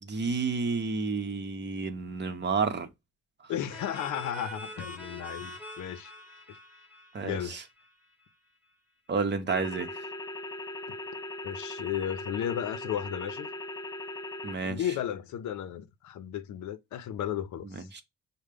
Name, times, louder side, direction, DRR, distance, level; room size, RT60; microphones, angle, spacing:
voice 1, 0.0-2.9 3.4-3.5 7.1-7.6 9.1-10.0 14.4-14.8 17.6-18.0, right 4 dB, 35° right, 0.8 m, -31 dB
voice 2, 3.5-6.1 6.5-6.6 7.2-7.6 11.4-13.5 14.6-17.9, left 10 dB, 75° left, 0.6 m, -34 dB
sound 1, 3.7-8.3, equal, 5° right, 1.0 m, -45 dB
sound 2, 9.5-14.6, left 2 dB, 15° left, 0.4 m, -39 dB
6.4 x 2.2 x 3.4 m
cardioid pair, 90°, 30 cm